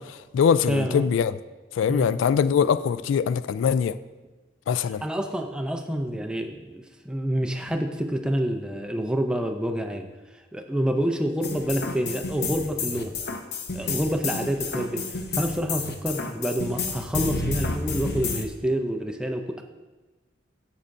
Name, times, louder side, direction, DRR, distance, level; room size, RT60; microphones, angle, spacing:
voice 1, 0.0-1.3 1.8-3.9 4.7-5.0, left 7 dB, 85° left, 0.3 m, -22 dB
voice 2, 0.7-1.0 1.9-2.1 5.0-10.1 10.5-13.2 13.7-19.6, equal, 5° right, 0.5 m, -28 dB
sound 1, 11.4-18.5, left 4 dB, 60° left, 0.7 m, -30 dB
9.6 x 7.3 x 2.6 m
head